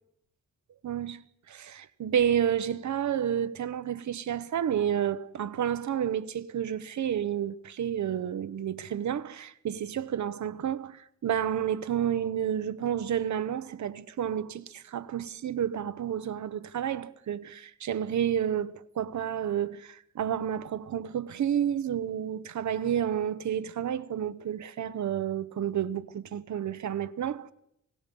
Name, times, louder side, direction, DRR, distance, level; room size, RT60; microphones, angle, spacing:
voice 1, 0.8-1.2 1.5-27.5, right 9 dB, 70° right, 0.9 m, -30 dB
26.5 x 18.5 x 5.4 m
cardioid pair, 100°, 29 cm